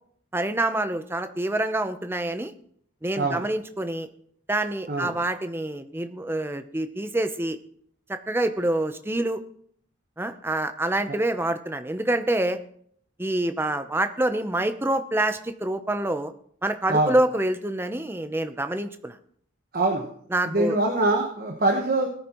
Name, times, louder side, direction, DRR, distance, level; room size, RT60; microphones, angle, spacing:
voice 1, 0.3-2.5 3.0-4.1 4.5-7.6 8.1-9.4 10.2-12.6 13.2-16.3 16.6-19.2 20.3-20.8, right 1 dB, 10° right, 9 dB, 0.7 m, -26 dB
voice 2, 3.2-3.5 4.9-5.1 11.1-11.2 16.9-17.2 19.7-20.1 20.4-22.1, right 2 dB, 50° right, 2 dB, 1.2 m, -24 dB
19.0 x 9.6 x 3.0 m, 0.63 s
head